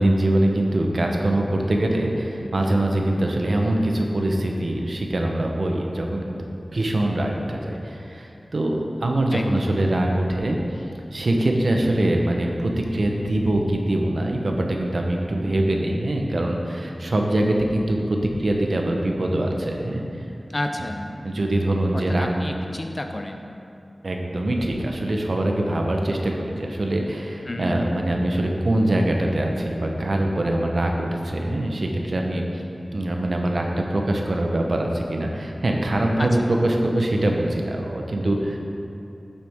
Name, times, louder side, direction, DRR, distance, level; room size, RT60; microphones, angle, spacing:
voice 1, 0.0-10.6 11.1-20.0 21.2-22.3 24.0-32.4 32.9-38.6, right 1 dB, 65° right, 1 dB, 1.0 m, -23 dB
voice 2, 9.3-9.8 20.5-21.1 21.9-23.4 27.5-27.8 36.2-36.4, left 1 dB, 35° left, 4 dB, 0.7 m, -30 dB
9.8 x 7.5 x 3.7 m, 2.6 s
wide cardioid pair, 75°, 0 cm